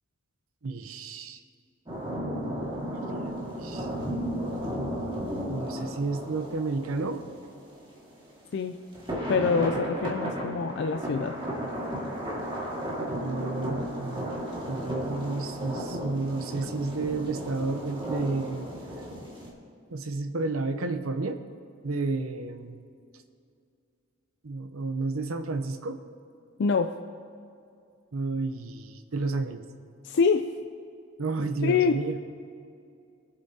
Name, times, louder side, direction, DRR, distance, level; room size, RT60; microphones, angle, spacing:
voice 1, 0.6-1.4 2.3-2.7 3.2-3.3 3.6-4.9 5.3-7.2 13.1-14.4 14.7-18.7 19.9-21.4 21.8-22.8 24.4-26.0 28.1-29.6 31.2-32.2, right 3 dB, 85° right, 8 dB, 0.8 m, -32 dB
sound 1, 1.9-8.2 8.9-19.5, equal, 25° right, 2.0 m, -34 dB
voice 2, 9.3-11.3 26.6-26.9 30.0-30.5 31.6-32.0, left 5 dB, 55° left, 6 dB, 0.4 m, -25 dB
21.5 x 7.8 x 2.8 m, 2.4 s
head